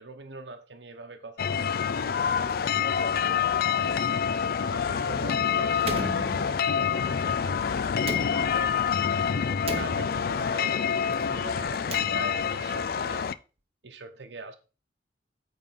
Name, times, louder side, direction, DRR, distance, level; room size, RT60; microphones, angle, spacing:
voice 1, 0.0-2.3 2.7-4.0 4.6-9.5 9.8-10.7 11.0-13.3 13.8-14.6, right 3 dB, 85° right, 0.9 m, -43 dB
sound 1, 1.4-13.3, left 7 dB, 55° left, 0.4 m, -27 dB
sound 2, 4.9-13.3, left 2 dB, 80° left, 1.8 m, -44 dB
Slam, 5.8-6.9 8.0-8.9 9.6-10.5 11.6-12.6, right 2 dB, 35° right, 0.9 m, -37 dB
9.0 x 3.5 x 5.6 m
head